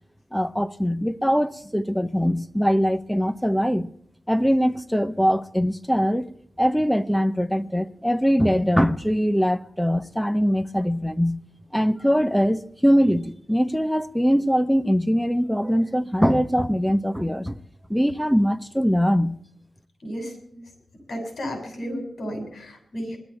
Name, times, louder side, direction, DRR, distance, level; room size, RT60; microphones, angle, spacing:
voice 1, 0.3-3.9 4.3-6.3 6.6-11.4 11.7-17.6 17.9-19.4, equal, ahead, 0.8 m, -22 dB
voice 2, 20.0-20.6 21.1-23.2, equal, 65° left, 7.2 m, -33 dB
20.5 x 13.0 x 4.5 m
wide cardioid pair, 125°, 0 cm